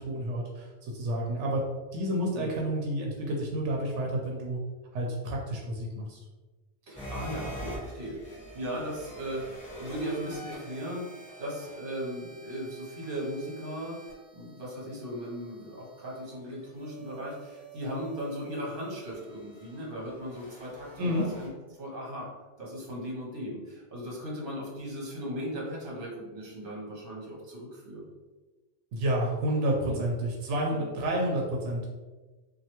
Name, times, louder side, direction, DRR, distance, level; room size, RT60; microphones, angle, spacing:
voice 1, 0.0-1.6 1.9-4.6 4.9-6.2 21.0-21.3 28.9-31.9, right 1 dB, 85° right, -1 dB, 0.9 m, -30 dB
sound 1, 6.9-21.5, equal, 5° left, 1.3 m, -46 dB
voice 2, 6.9-21.5 21.7-22.3 22.6-28.1 29.9-30.0 30.7-30.9, equal, 50° right, -3 dB, 1.0 m, -37 dB
3.1 x 2.3 x 2.9 m, 1.2 s
omnidirectional pair, 1.2 m